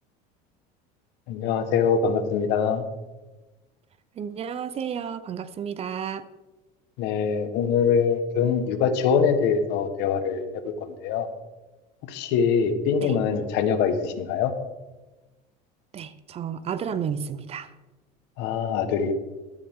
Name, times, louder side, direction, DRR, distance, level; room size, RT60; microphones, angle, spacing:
voice 1, 1.3-2.8 7.0-10.5 11.0-11.3 12.1-14.5 18.4-19.1, left 6 dB, 65° left, 9 dB, 1.4 m, -23 dB
voice 2, 4.2-6.3 13.0-13.1 15.9-17.7, right 7 dB, 35° right, 14 dB, 0.7 m, -32 dB
12.5 x 12.0 x 3.7 m, 1.1 s
cardioid pair, 135°, 19 cm